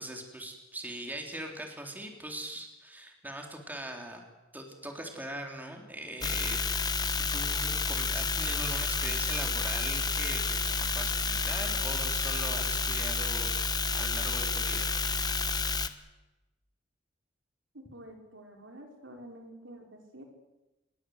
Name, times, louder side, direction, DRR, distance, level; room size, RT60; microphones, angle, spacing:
voice 1, 0.0-4.2 4.5-6.9 7.2-14.9, right 1 dB, 10° right, 2 dB, 3.6 m, -41 dB
sound 1, 6.2-15.9, left 4 dB, 20° left, 1.2 m, -30 dB
voice 2, 17.7-20.3, right 1 dB, 70° right, 2 dB, 5.1 m, -49 dB
27.0 x 21.5 x 8.0 m, 1.1 s
head